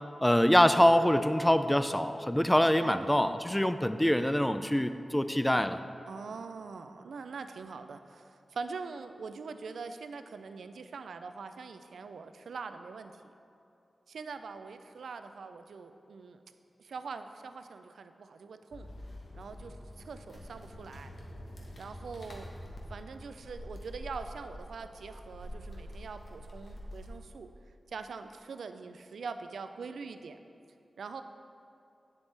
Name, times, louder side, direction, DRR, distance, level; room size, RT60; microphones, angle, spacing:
voice 1, 0.2-5.8, equal, 10° left, 11 dB, 0.4 m, -25 dB
voice 2, 2.8-3.4 6.1-13.3 14.1-16.4 16.8-18.9 19.3-21.1 21.8-22.5 22.9-27.5 27.9-30.4 31.0-31.2, right 5 dB, 85° right, 9 dB, 0.3 m, -43 dB
sound 1, 18.7-27.2, equal, 65° left, 1.2 m, -46 dB
9.0 x 7.1 x 3.3 m, 2.7 s
cardioid pair, 45°, 0 cm